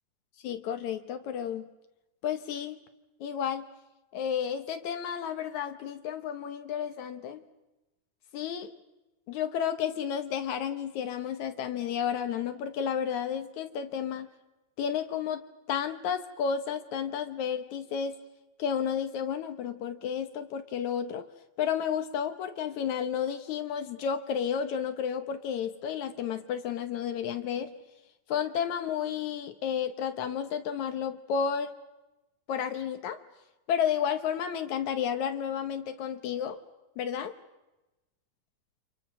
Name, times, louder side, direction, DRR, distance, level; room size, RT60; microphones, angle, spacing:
voice 1, 0.4-1.7 2.2-2.8 3.2-3.7 4.1-7.4 8.3-8.7 9.3-14.3 14.8-18.2 18.6-21.2 21.6-27.7 28.3-31.7 32.5-33.2 33.7-36.6 37.0-37.3, left 8 dB, 70° left, 8 dB, 2.3 m, -32 dB
29.5 x 25.5 x 6.1 m, 1.0 s
omnidirectional pair, 3.5 m